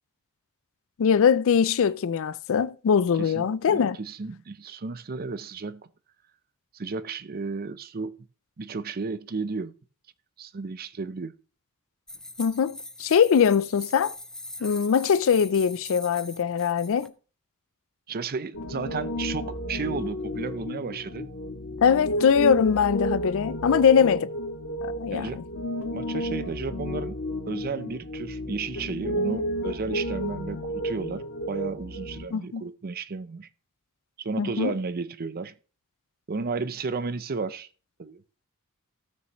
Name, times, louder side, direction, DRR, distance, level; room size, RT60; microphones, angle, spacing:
voice 1, 1.0-4.0 12.4-14.2 14.6-17.1 21.8-24.3 24.8-25.4 32.3-32.6 34.4-34.7, left 7 dB, 65° left, 0.4 m, -22 dB
voice 2, 3.2-5.9 6.7-8.2 8.6-9.7 10.4-11.3 18.1-21.3 24.0-24.1 25.1-25.4 25.9-27.2 27.5-33.5 34.2-35.5 36.3-37.7 38.0-38.2, right 4 dB, 45° right, 0.6 m, -33 dB
sound 1, 12.1-17.1, left 1 dB, 5° left, 0.4 m, -41 dB
Piano, 18.5-32.2, equal, 85° left, 1.8 m, -32 dB
15.5 x 6.3 x 3.0 m
head